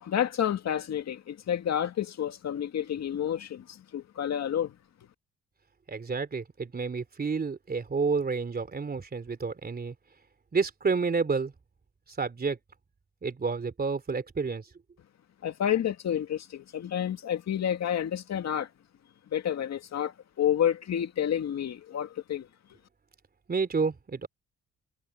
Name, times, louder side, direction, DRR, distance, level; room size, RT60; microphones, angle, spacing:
voice 1, 0.0-4.7 15.4-18.7 19.3-22.5, left 10 dB, 60° left, 2.2 m, -29 dB
voice 2, 5.9-9.9 10.5-11.5 12.2-12.6 13.2-14.6 23.5-24.3, right 4 dB, 30° right, 3.2 m, -29 dB
cardioid pair, 90°, 30 cm